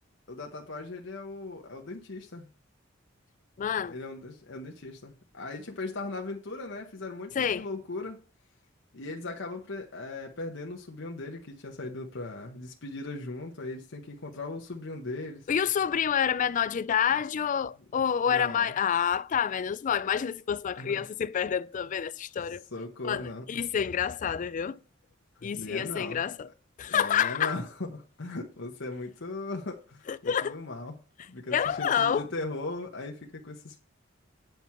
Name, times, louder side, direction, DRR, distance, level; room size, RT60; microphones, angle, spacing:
voice 1, 0.3-2.5 3.8-8.2 8.9-15.5 18.3-18.8 20.8-21.0 22.7-23.5 25.4-26.2 26.8-31.0 31.3-33.8, left 2 dB, 65° left, 1.1 m, -38 dB
voice 2, 3.6-4.0 7.4-7.7 15.5-22.6 23.0-24.8 25.4-26.5 26.8-27.5 30.1-30.6 31.5-32.3, left 8 dB, 40° left, 0.3 m, -28 dB
9.3 x 4.6 x 5.8 m
head